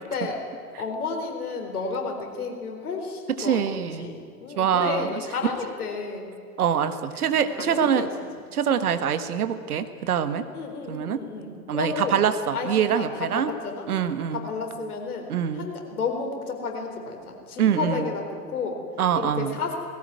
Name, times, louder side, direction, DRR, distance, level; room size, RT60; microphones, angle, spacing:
voice 1, 0.1-0.4 0.8-6.3 7.4-8.1 10.5-12.2 12.5-13.9 14.3-15.3 15.5-18.8 19.1-19.7, left 4 dB, 70° left, 3 dB, 4.4 m, -32 dB
voice 2, 3.4-4.1 4.5-5.2 6.6-8.1 8.5-10.4 10.9-11.2 11.7-13.5 13.9-14.4 15.3-15.7 17.6-18.1 19.0-19.6, right 8 dB, 70° right, 11 dB, 1.7 m, -24 dB
19.5 x 17.5 x 9.3 m, 2.2 s
figure-of-eight pair, 95°, 46 cm